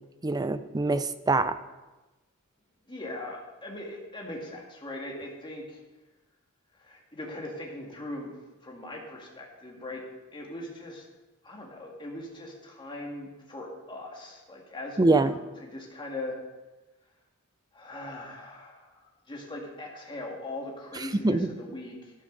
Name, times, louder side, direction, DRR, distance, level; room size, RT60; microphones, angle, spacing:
voice 1, 0.2-1.6 15.0-15.3 21.2-21.6, right 2 dB, 20° right, 13 dB, 0.5 m, -24 dB
voice 2, 2.9-5.8 6.8-8.3 8.6-10.0 10.3-11.0 11.4-16.4 17.7-22.1, left 1 dB, 20° left, -1 dB, 2.2 m, -40 dB
12.5 x 12.5 x 4.0 m, 1.1 s
head